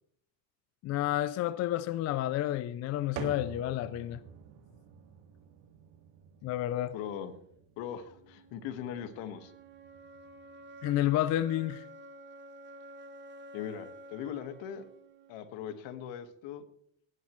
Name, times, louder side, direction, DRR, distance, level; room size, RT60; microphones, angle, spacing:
voice 1, 0.8-4.2 6.4-6.9 10.8-11.8, left 13 dB, 35° left, 15 dB, 0.4 m, -30 dB
sound 1, 3.2-10.9, right 8 dB, 60° right, 2.2 m, -49 dB
voice 2, 6.9-7.3 7.8-9.5 13.5-14.9 15.3-16.6, left 9 dB, 65° left, 9 dB, 1.7 m, -40 dB
sound 2, 8.0-16.0, right 1 dB, 20° right, 0.8 m, -51 dB
18.0 x 11.5 x 3.2 m, 0.68 s
supercardioid pair, 130°, 49 cm